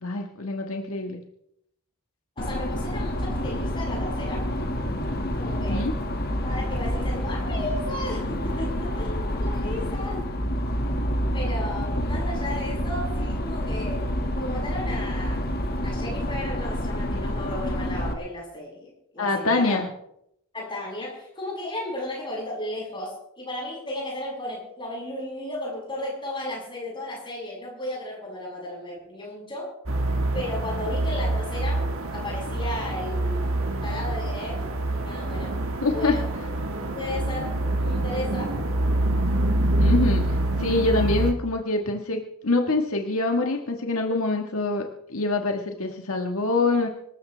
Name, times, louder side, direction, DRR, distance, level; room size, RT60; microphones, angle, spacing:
voice 1, 0.0-1.2 5.7-6.0 19.2-19.9 35.8-36.2 39.8-46.9, left 2 dB, 75° left, 3 dB, 1.6 m, -25 dB
sound 1, 2.4-18.1, equal, 45° left, 1.8 m, -28 dB
voice 2, 2.4-4.5 5.4-5.9 6.4-10.3 11.3-14.0 14.4-15.5 15.8-19.8 20.5-29.7 30.3-33.5 33.8-35.6 35.9-36.3 36.9-38.6, left 1 dB, 20° left, -4 dB, 7.8 m, -34 dB
sound 2, 29.9-41.3, right 1 dB, 65° right, 1.8 m, -26 dB
25.5 x 14.0 x 3.4 m, 0.76 s
head